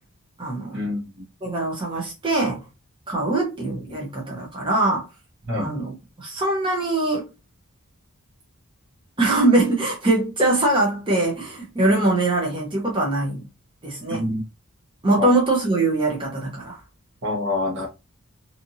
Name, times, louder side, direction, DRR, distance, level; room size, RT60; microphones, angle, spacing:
voice 1, 0.4-0.9 1.4-2.6 3.1-5.1 5.5-7.3 9.2-13.4 13.8-14.2 15.0-16.8, right 2 dB, 25° right, 0.7 m, -22 dB
voice 2, 17.2-17.9, left 2 dB, 60° right, 1.0 m, -25 dB
2.6 x 2.5 x 2.7 m
head